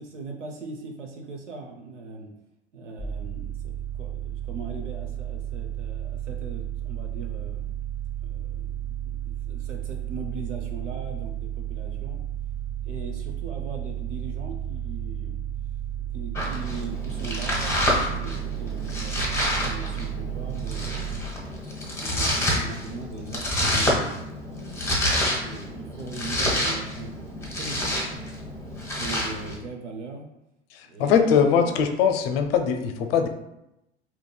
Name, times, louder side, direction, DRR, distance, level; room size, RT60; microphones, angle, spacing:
voice 1, 0.0-2.3 2.7-7.6 8.2-12.2 12.8-15.4 16.0-21.1 22.0-28.2 29.0-30.3 30.8-31.7, right 3 dB, 85° right, 2 dB, 0.6 m, -40 dB
sound 1, 3.0-21.2, right 11 dB, 15° right, 0.3 m, -33 dB
Domestic sounds home sounds, 16.3-29.6, left 1 dB, 10° left, 0.9 m, -28 dB
voice 2, 30.7-33.3, left 7 dB, 55° left, 6 dB, 0.5 m, -21 dB
3.6 x 2.8 x 2.2 m, 0.87 s
figure-of-eight pair, 80°, 35 cm